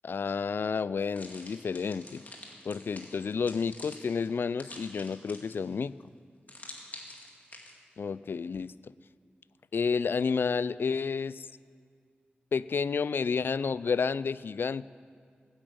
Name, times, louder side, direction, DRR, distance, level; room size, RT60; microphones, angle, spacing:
voice 1, 0.0-2.2 2.7-5.9 8.0-8.7 9.7-11.5 12.5-14.9, left 5 dB, 65° left, 18 dB, 0.3 m, -30 dB
sound 1, 1.1-5.7 6.5-7.7, left 2 dB, 45° left, 2.1 m, -47 dB
13.5 x 8.9 x 8.6 m, 2.1 s
cardioid pair, 65°, 4 cm